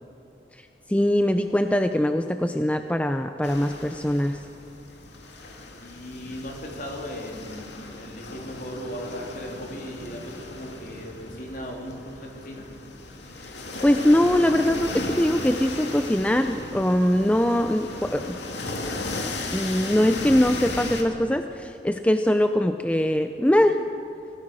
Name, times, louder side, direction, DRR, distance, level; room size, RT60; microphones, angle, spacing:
voice 1, 0.9-4.4 13.8-18.4 19.5-23.8, left 1 dB, 10° left, 7 dB, 0.5 m, -22 dB
sound 1, 3.4-21.0, left 2 dB, 85° left, 2.3 m, -36 dB
voice 2, 5.8-12.7, equal, 50° left, 0 dB, 3.6 m, -37 dB
25.5 x 16.5 x 6.3 m, 2.9 s
head